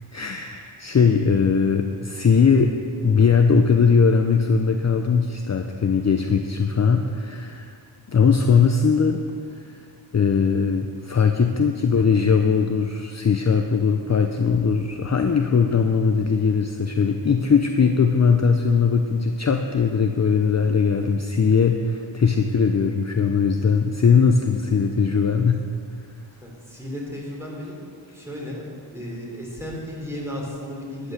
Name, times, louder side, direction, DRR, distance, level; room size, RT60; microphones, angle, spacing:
voice 1, 0.1-2.7 3.0-7.8 8.1-9.2 9.6-9.8 10.1-25.6, left 5 dB, 35° left, 5 dB, 0.7 m, -20 dB
voice 2, 26.4-27.8 28.1-28.7 28.9-31.1, equal, 5° right, -4 dB, 4.0 m, -34 dB
11.5 x 9.8 x 6.6 m, 2.2 s
wide cardioid pair, 95°, 46 cm